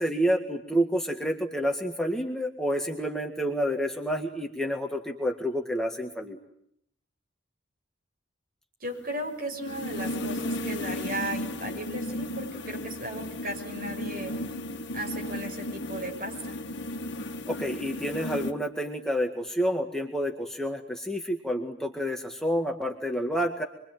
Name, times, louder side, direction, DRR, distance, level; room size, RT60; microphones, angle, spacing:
voice 1, 0.0-6.4 17.5-23.6, equal, 5° left, 2 dB, 1.9 m, -29 dB
voice 2, 8.8-14.3 14.9-16.6, right 1 dB, 50° right, 2 dB, 6.7 m, -36 dB
sound 1, 8.9-18.5, left 1 dB, 60° left, 1.7 m, -35 dB
27.5 x 23.0 x 9.3 m, 0.72 s
head